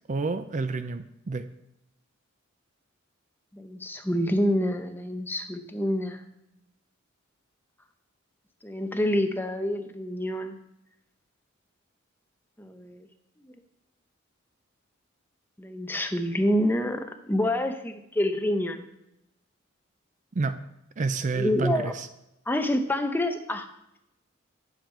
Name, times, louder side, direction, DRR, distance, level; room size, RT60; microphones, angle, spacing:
voice 1, 0.1-1.5 20.3-20.6 21.0-22.1, right 3 dB, 40° right, 11 dB, 0.4 m, -29 dB
voice 2, 3.5-6.2 8.6-10.5 12.6-13.1 13.4-13.5 15.6-18.8 21.3-21.9 22.5-23.7, left 1 dB, 10° left, 6 dB, 0.7 m, -27 dB
9.4 x 7.3 x 4.4 m, 0.84 s
head